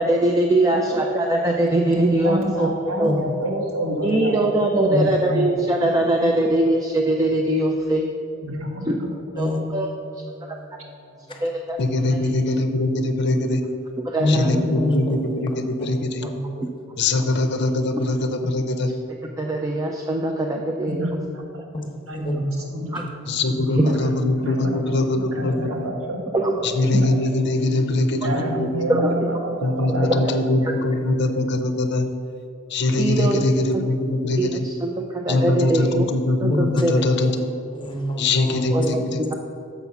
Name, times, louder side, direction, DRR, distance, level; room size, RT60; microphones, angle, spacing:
voice 1, 0.0-2.7 3.0-3.1 4.0-8.1 8.9-9.0 9.4-9.9 10.5-10.6 11.4-11.8 14.1-14.7 16.6-16.7 19.2-21.1 22.9-23.0 23.8-23.9 26.3-26.5 28.9-29.2 33.0-33.4 33.7-33.8 34.4-36.1 36.4-37.0 38.7-39.3, right 1 dB, 15° right, 1 dB, 0.4 m, -22 dB
voice 2, 1.9-5.4 5.8-6.2 8.4-9.1 20.9-21.7 22.1-24.1 24.4-24.8 25.1-26.5 27.0-27.1 28.2-30.2, right 1 dB, 75° right, -1 dB, 1.5 m, -29 dB
voice 3, 4.9-5.5 9.4-9.8 10.1-10.7 11.3-11.4 14.2-15.2 15.8-15.9 16.2-16.3 21.7-22.4 36.5-37.0 37.7-38.9, left 1 dB, 25° left, 2 dB, 0.9 m, -26 dB
voice 4, 11.8-13.6 14.3-16.3 17.0-18.9 23.3-25.9 26.6-28.8 29.6-32.1 32.7-34.7 35.3-37.5 38.2-39.3, left 2 dB, 55° left, 7 dB, 0.6 m, -22 dB
7.1 x 5.4 x 5.8 m, 2.7 s
head